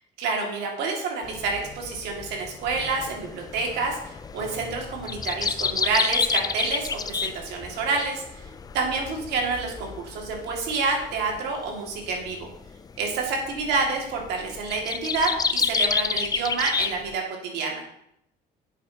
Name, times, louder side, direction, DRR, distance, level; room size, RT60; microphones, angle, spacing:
voice 1, 0.2-8.2 8.7-12.5 13.0-17.9, right 4 dB, 85° right, 0 dB, 2.1 m, -28 dB
sound 1, 1.2-17.1, left 5 dB, 20° left, 0.4 m, -30 dB
10.0 x 7.4 x 2.8 m, 0.77 s
cardioid pair, 110°, 17 cm